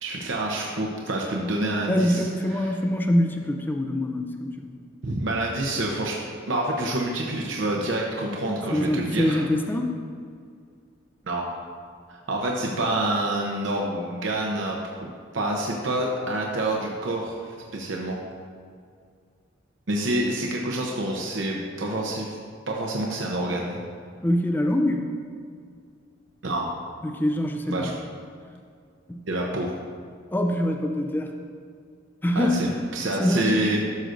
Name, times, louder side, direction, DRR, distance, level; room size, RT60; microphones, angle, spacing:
voice 1, 0.0-2.3 2.5-2.7 5.0-6.2 6.5-9.4 11.3-11.5 12.1-14.8 15.3-18.2 19.9-22.4 22.7-23.8 26.4-26.7 27.7-27.9 29.3-29.7 32.3-33.8, right 1 dB, 80° right, -1 dB, 0.8 m, -27 dB
voice 2, 1.9-4.7 8.7-10.0 24.2-25.1 27.0-27.9 29.1-29.3 30.3-31.3 32.2-32.8 33.2-33.7, left 1 dB, 10° left, 3 dB, 0.4 m, -24 dB
12.5 x 6.5 x 2.6 m, 2.2 s
head